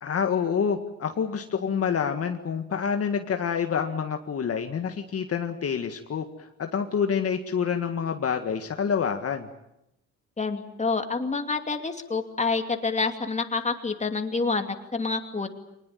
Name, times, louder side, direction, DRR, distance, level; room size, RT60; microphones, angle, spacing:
voice 1, 0.0-9.5, left 7 dB, 50° left, 5 dB, 1.8 m, -27 dB
voice 2, 10.4-15.5, left 4 dB, 25° left, 6 dB, 2.7 m, -28 dB
23.5 x 20.0 x 9.2 m, 0.84 s
cardioid pair, 90°, 30 cm